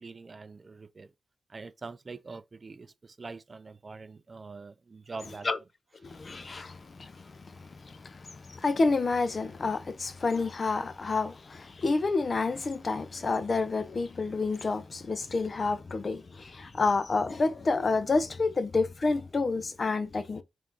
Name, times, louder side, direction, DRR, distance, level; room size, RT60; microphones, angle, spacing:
voice 1, 0.0-1.1 1.5-2.9 3.2-5.5, right 4 dB, 45° right, 0.4 m, -44 dB
voice 2, 6.2-6.7 8.6-11.3 11.8-16.2 16.8-20.4, left 3 dB, 50° left, 0.6 m, -28 dB
3.5 x 2.6 x 4.6 m
supercardioid pair, 45°, 0 cm